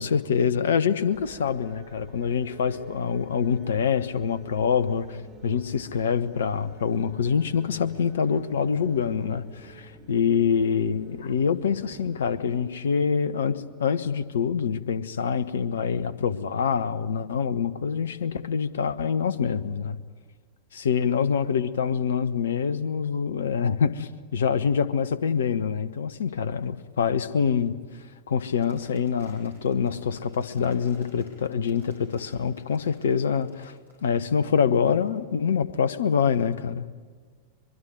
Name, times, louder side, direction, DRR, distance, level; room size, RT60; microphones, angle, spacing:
voice 1, 0.0-5.2 5.4-20.0 20.7-27.8 28.3-33.7 34.0-36.8, left 6 dB, 65° left, 16 dB, 1.1 m, -25 dB
sound 1, 1.1-13.1, right 2 dB, 35° right, 3.5 m, -48 dB
sound 2, 28.6-35.6, equal, 75° right, 7.0 m, -53 dB
23.5 x 23.0 x 9.6 m, 1.5 s
figure-of-eight pair, 90°, 0 cm